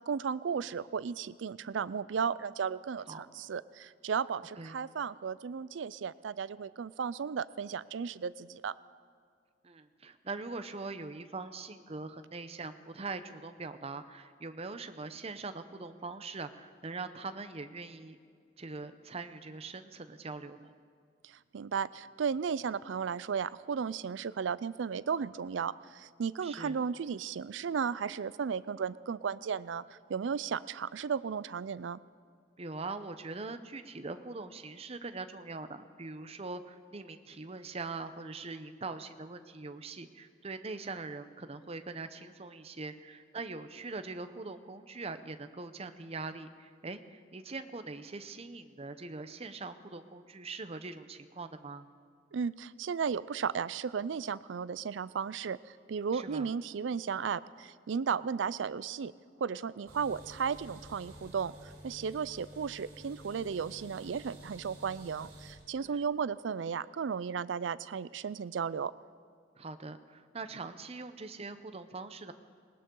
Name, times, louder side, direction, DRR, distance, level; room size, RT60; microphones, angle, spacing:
voice 1, 0.1-8.7 21.2-32.0 52.3-59.1 59.4-68.9, right 6 dB, 85° right, 18 dB, 0.4 m, -35 dB
voice 2, 9.6-18.2 18.6-20.7 26.4-26.8 32.6-51.9 56.1-56.5 65.8-66.0 69.6-72.3, right 3 dB, 35° right, 10 dB, 0.7 m, -42 dB
sound 1, 59.9-65.5, right 1 dB, 55° right, 4.2 m, -51 dB
19.5 x 19.0 x 3.8 m, 2.1 s
head